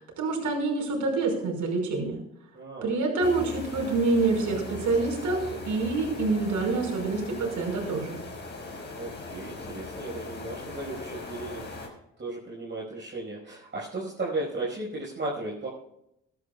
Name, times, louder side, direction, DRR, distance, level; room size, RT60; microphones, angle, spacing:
voice 1, 0.0-2.2 2.8-8.2, right 3 dB, 55° right, 1 dB, 5.4 m, -27 dB
voice 2, 2.5-3.0 9.0-11.7 12.2-15.7, right 2 dB, 30° right, -4 dB, 5.3 m, -35 dB
sound 1, 3.2-11.9, left 3 dB, 30° left, 5.2 m, -39 dB
22.0 x 11.0 x 2.4 m, 0.80 s
figure-of-eight pair, 50°, 37 cm